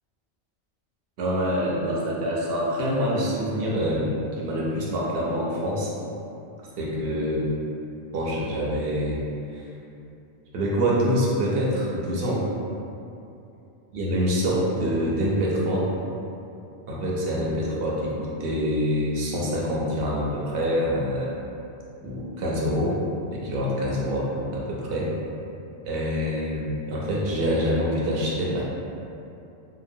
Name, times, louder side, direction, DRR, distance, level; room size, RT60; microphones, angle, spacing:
voice 1, 1.2-4.1 4.4-5.9 6.8-7.5 8.1-9.2 9.5-9.6 10.5-12.4 13.9-15.9 16.9-21.3 22.0-23.0 23.3-25.1 25.8-28.6, equal, 65° right, -5 dB, 0.7 m, -25 dB
2.8 x 2.0 x 2.6 m, 2.7 s
omnidirectional pair, 1.2 m